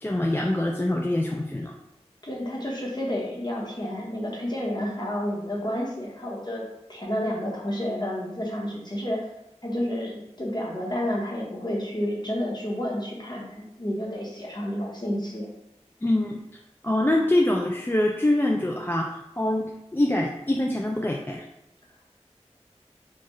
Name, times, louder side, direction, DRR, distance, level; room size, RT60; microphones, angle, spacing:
voice 1, 0.0-1.7 16.0-16.4 16.8-21.4, left 1 dB, 20° left, 0 dB, 0.4 m, -24 dB
voice 2, 2.2-9.2 9.6-15.5, equal, 40° left, -3 dB, 1.1 m, -30 dB
4.4 x 2.4 x 3.1 m, 0.88 s
wide cardioid pair, 40°, 12 cm